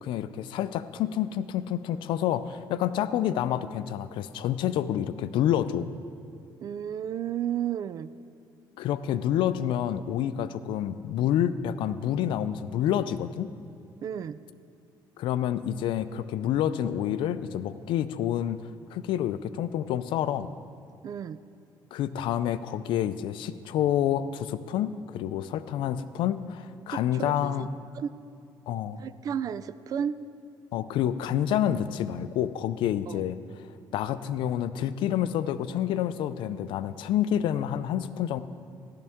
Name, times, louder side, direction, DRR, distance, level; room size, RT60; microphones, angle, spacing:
voice 1, 0.0-5.9 8.8-13.5 15.2-20.5 21.9-27.7 28.7-29.0 30.7-33.7 33.9-38.4, left 10 dB, 80° left, 13 dB, 0.4 m, -28 dB
voice 2, 6.6-8.1 14.0-14.4 21.0-21.4 26.9-27.7 27.9-28.1 29.0-30.2 33.1-33.2, right 9 dB, 45° right, 15 dB, 0.3 m, -33 dB
15.0 x 12.0 x 3.6 m, 2.5 s
cardioid pair, 140°, 8 cm